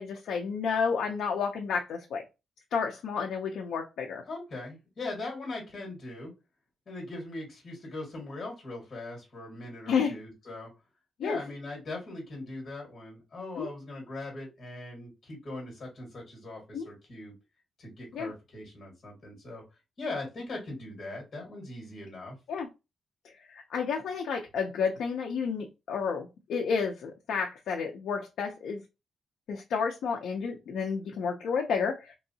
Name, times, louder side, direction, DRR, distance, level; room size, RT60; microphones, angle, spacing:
voice 1, 0.0-2.2 2.7-4.2 9.9-10.2 11.2-11.4 13.6-13.7 16.7-16.9 18.1-18.3 22.5-22.7 23.2-28.8 29.5-32.1, left 6 dB, 80° left, 1 dB, 0.5 m, -31 dB
voice 2, 4.3-6.3 6.9-10.7 11.2-17.3 17.8-19.6 20.0-22.4, left 2 dB, 35° left, -2 dB, 1.6 m, -40 dB
3.0 x 2.6 x 2.7 m, 0.25 s
wide cardioid pair, 180°, 0 cm